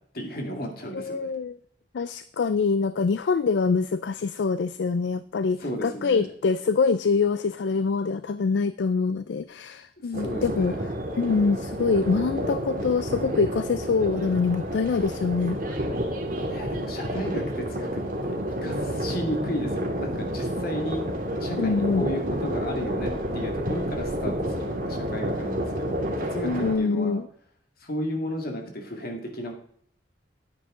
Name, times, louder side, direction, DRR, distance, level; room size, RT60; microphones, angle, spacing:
voice 1, 0.1-1.3 5.6-6.3 10.1-10.8 16.5-21.1 21.4-27.2 27.8-29.5, equal, 55° left, 3 dB, 2.2 m, -34 dB
voice 2, 0.9-1.6 1.9-10.7 11.2-15.8 21.6-22.1 26.4-27.3, left 4 dB, 80° left, 14 dB, 0.4 m, -25 dB
sound 1, 10.1-26.8, equal, 50° right, 2.2 m, -30 dB
9.6 x 9.4 x 3.7 m, 0.64 s
head